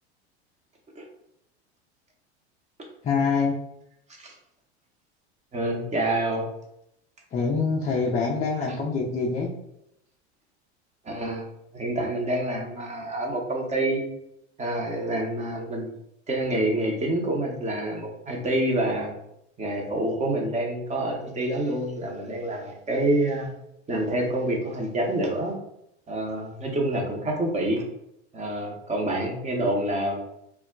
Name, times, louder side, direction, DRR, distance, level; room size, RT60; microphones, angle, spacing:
voice 1, 3.0-3.6 7.3-9.5, left 4 dB, 25° left, -3 dB, 0.4 m, -25 dB
voice 2, 5.5-6.4 11.0-11.5 11.7-14.0 14.6-15.9 16.3-19.1 19.6-23.5 23.9-25.5 26.1-27.8 28.3-30.2, right 1 dB, 20° right, 0 dB, 0.8 m, -27 dB
2.2 x 2.1 x 3.7 m, 0.79 s
hypercardioid pair, 90°, 34 cm